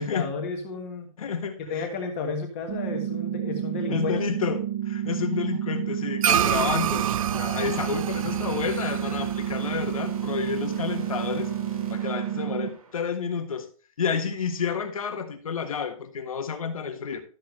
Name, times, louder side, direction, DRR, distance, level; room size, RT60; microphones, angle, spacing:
voice 1, 0.0-1.1 1.7-4.2, left 4 dB, 25° left, 1.5 m, -32 dB
voice 2, 1.2-1.9 3.9-11.5 11.9-13.7 14.0-17.2, left 6 dB, 75° left, 1.6 m, -30 dB
sound 1, 2.7-12.7, right 11 dB, 15° right, 0.8 m, -30 dB
sound 2, 6.2-10.8, right 10 dB, 75° right, 0.4 m, -28 dB
sound 3, 6.4-12.9, right 4 dB, 90° right, 2.7 m, -43 dB
12.5 x 6.7 x 3.2 m
hypercardioid pair, 175°, 18 cm